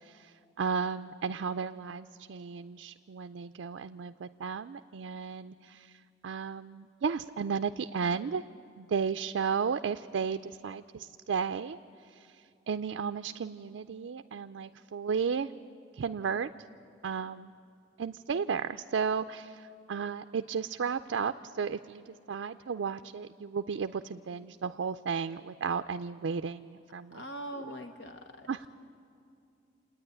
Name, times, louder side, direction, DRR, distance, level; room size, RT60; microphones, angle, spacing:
voice 1, 0.0-6.0 6.2-8.4 8.8-11.8 12.1-12.4 12.7-15.5 16.0-16.5 17.0-17.5 18.0-27.2 27.7-27.8 28.5-28.7, right 6 dB, 85° right, 9 dB, 0.4 m, -34 dB
voice 2, 27.1-28.5, equal, 70° left, 5 dB, 0.9 m, -42 dB
28.5 x 9.6 x 9.9 m, 2.6 s
head